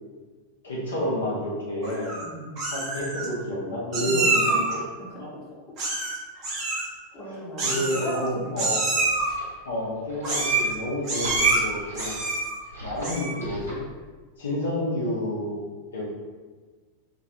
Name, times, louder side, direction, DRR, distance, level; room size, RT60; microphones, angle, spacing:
voice 1, 0.6-2.2 2.7-4.8 5.2-5.3 7.6-8.8 9.7-12.1 12.8-13.8 14.4-15.6 15.9-16.0, left 1 dB, 65° left, -5 dB, 0.6 m, -29 dB
Meow, 1.8-2.2 2.6-3.3 3.9-4.7 5.8-6.2 6.4-6.9 7.6-8.3 8.6-9.3 10.2-10.7 11.0-11.6 11.9-12.5 13.0-13.4, right 3 dB, 35° right, 0.7 m, -26 dB
voice 2, 2.2-2.6 4.0-4.6 5.3-5.4 6.3-6.5 7.1-8.8, right 1 dB, 25° left, -6 dB, 0.8 m, -36 dB
sound 1, 8.8-13.9, equal, 80° right, 0.8 m, -39 dB
2.3 x 2.2 x 2.7 m, 1.4 s
figure-of-eight pair, 90°, 0 cm